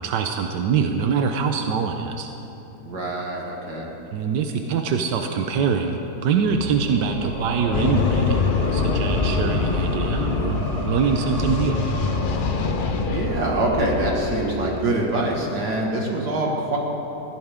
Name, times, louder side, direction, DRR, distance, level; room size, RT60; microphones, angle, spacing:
voice 1, 0.0-2.3 4.1-8.4 8.7-11.8, right 6 dB, 85° right, 5 dB, 1.4 m, -24 dB
voice 2, 2.8-3.9 12.9-16.8, right 1 dB, 70° right, -2 dB, 2.5 m, -25 dB
sound 1, 6.3-15.4, right 1 dB, 20° right, 3.0 m, -31 dB
sound 2, 7.7-14.5, left 5 dB, 70° left, 0.4 m, -24 dB
21.5 x 15.0 x 3.7 m, 3.0 s
omnidirectional pair, 1.8 m